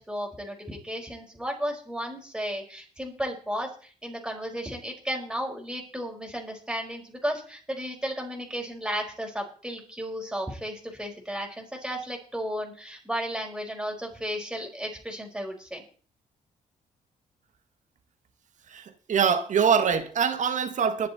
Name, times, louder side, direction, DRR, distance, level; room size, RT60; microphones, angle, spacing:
voice 1, 0.0-15.8, equal, 5° right, 1 dB, 4.7 m, -34 dB
voice 2, 18.7-21.1, right 7 dB, 55° right, 11 dB, 1.6 m, -24 dB
21.0 x 7.5 x 4.2 m, 0.42 s
cardioid pair, 100°, 15 cm